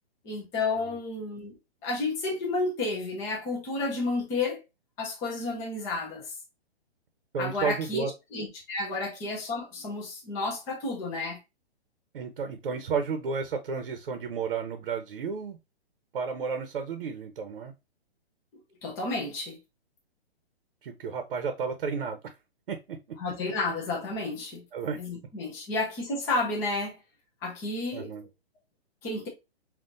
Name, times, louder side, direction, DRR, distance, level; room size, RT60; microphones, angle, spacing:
voice 1, 0.2-1.6 1.8-4.6 5.0-6.3 7.4-11.4 18.8-19.6 23.2-24.6 25.0-27.0 27.4-28.1 29.0-29.3, left 3 dB, 10° left, 0.5 m, -31 dB
voice 2, 7.3-8.1 12.1-15.6 16.1-17.7 20.8-22.4 22.7-23.2 24.7-25.0 27.9-28.3, right 5 dB, 60° right, 0.9 m, -32 dB
5.6 x 2.4 x 2.5 m
hypercardioid pair, 160°, 32 cm